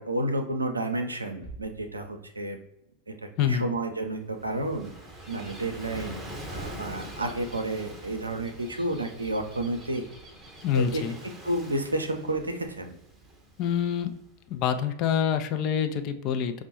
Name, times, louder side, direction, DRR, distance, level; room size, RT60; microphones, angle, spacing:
voice 1, 0.0-2.6 3.1-3.2 3.4-4.9 5.3-6.2 6.5-10.0 10.7-11.0 11.4-12.9, right 1 dB, 80° right, 5 dB, 0.5 m, -31 dB
sound 1, 1.4-3.4, right 3 dB, 20° left, 0.8 m, -48 dB
Gull seagull / Waves surf, 4.0-14.6, right 1 dB, 15° right, 0.7 m, -44 dB
voice 2, 10.6-11.2 13.6-14.1 14.5-16.6, left 8 dB, 40° left, 7 dB, 0.4 m, -26 dB
5.0 x 2.1 x 2.9 m, 0.82 s
figure-of-eight pair, 90°, 0 cm